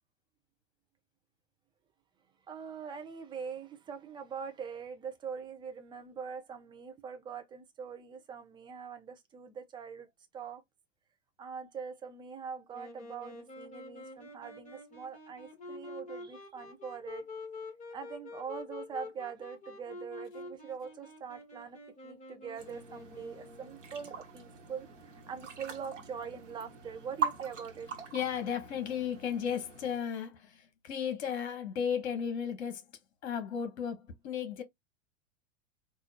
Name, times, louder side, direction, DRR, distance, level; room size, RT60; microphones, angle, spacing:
voice 1, 2.5-10.1 10.3-10.6 11.4-17.3 17.9-27.9, right 6 dB, 10° right, 0.5 m, -43 dB
Wind instrument woodwind instrument, 12.7-23.8, left 2 dB, 20° left, 1.7 m, -47 dB
sound 1, 22.6-30.0, right 6 dB, 65° right, 1.2 m, -42 dB
voice 2, 28.1-32.8 33.2-34.6, left 8 dB, 55° left, 1.1 m, -34 dB
4.0 x 2.4 x 2.8 m
figure-of-eight pair, 95°, 39 cm